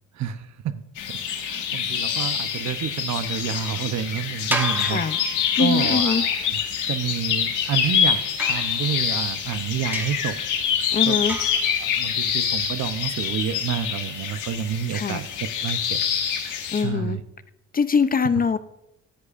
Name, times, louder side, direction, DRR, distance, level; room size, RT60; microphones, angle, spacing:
voice 1, 0.2-0.7 1.1-5.2 5.6-6.6 6.9-10.4 11.0-11.2 11.8-15.3 15.6-16.0 16.8-17.2, right 9 dB, 65° right, 12 dB, 0.8 m, -29 dB
sound 1, 1.0-16.8, left 8 dB, 90° left, 1.8 m, -26 dB
sound 2, 4.5-5.9 8.4-9.3 9.9-10.4 11.3-11.8, equal, 5° right, 1.6 m, -32 dB
voice 2, 4.8-5.2 5.6-6.2 10.9-11.4 14.9-15.2 16.7-17.2 17.7-18.6, left 6 dB, 30° left, 13 dB, 0.6 m, -23 dB
16.5 x 10.5 x 2.5 m, 0.84 s
cardioid pair, 90°, 30 cm